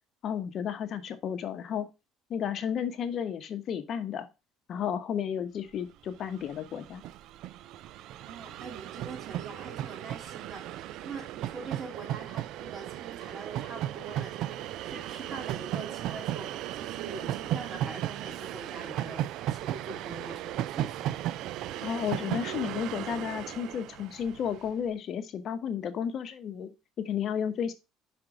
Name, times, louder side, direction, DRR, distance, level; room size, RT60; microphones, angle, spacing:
voice 1, 0.2-1.9 2.3-4.3 4.7-7.0 21.8-27.7, left 8 dB, 55° left, 0.8 m, -33 dB
Train, 6.0-6.1 6.3-24.7, right 13 dB, 65° right, 0.4 m, -36 dB
voice 2, 8.3-21.2, right 4 dB, 40° right, 2.2 m, -43 dB
6.0 x 4.3 x 4.9 m
supercardioid pair, 75°, 0 cm